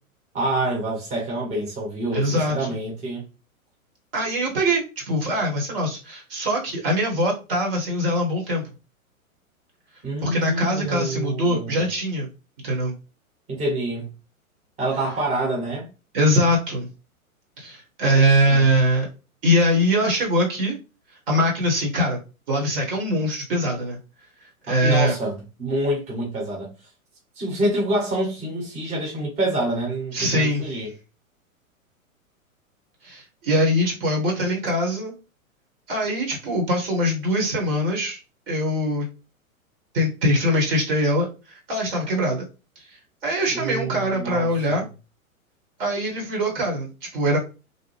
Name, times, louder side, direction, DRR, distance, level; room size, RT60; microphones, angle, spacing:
voice 1, 0.3-3.2 10.0-11.9 13.5-14.1 14.8-15.9 18.0-18.7 24.7-26.7 27.4-30.9 43.5-44.8, right 1 dB, 15° right, 1.0 m, -27 dB
voice 2, 2.1-2.7 4.1-8.6 10.2-12.3 12.6-12.9 16.1-16.9 17.6-19.1 19.4-20.8 21.3-22.2 22.5-24.0 24.7-25.1 30.1-30.7 33.0-35.1 35.9-38.2 38.5-39.1 39.9-42.4 43.2-44.8 45.8-47.4, equal, 40° right, 1.1 m, -22 dB
2.7 x 2.1 x 3.2 m
figure-of-eight pair, 110°, 43 cm